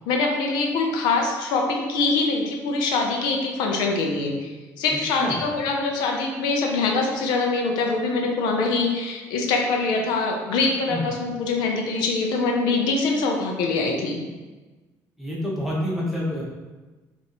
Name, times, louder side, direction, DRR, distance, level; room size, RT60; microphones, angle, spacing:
voice 1, 0.1-4.5 4.8-14.2, left 3 dB, 85° left, 1 dB, 0.6 m, -24 dB
voice 2, 4.9-5.4 10.9-11.0 15.2-16.4, left 1 dB, 5° right, -5 dB, 1.0 m, -28 dB
5.2 x 2.6 x 3.0 m, 1.2 s
cardioid pair, 140°, 7 cm